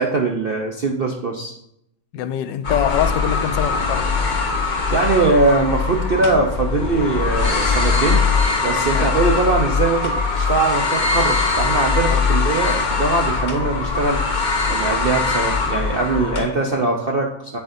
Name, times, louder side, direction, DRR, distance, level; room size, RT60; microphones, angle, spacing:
voice 1, 0.0-1.5 4.9-8.2 8.6-14.2 14.7-17.6, right 3 dB, 60° right, 0.6 m, -21 dB
voice 2, 2.1-4.1 8.9-9.1 12.1-12.3, left 10 dB, 85° left, 1.2 m, -24 dB
sound 1, 2.6-16.4, left 4 dB, 35° left, 1.0 m, -21 dB
8.8 x 8.2 x 2.6 m
omnidirectional pair, 1.9 m